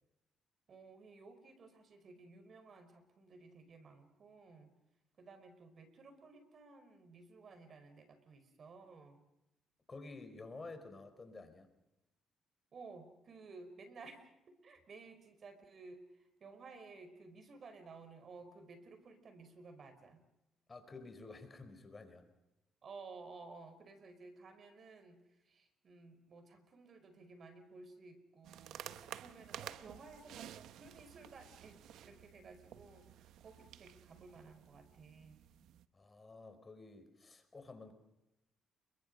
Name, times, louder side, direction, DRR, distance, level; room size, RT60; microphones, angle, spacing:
voice 1, 0.7-4.7 5.2-9.2 12.7-20.2 22.8-35.5, right 3 dB, 50° right, 9 dB, 4.8 m, -55 dB
voice 2, 9.9-11.7 20.7-22.3 35.9-37.9, left 3 dB, 30° left, 8 dB, 4.5 m, -51 dB
sound 1, 28.4-35.9, right 11 dB, 80° right, 0.9 m, -52 dB
29.5 x 23.0 x 5.3 m, 0.90 s
cardioid pair, 90°, 0 cm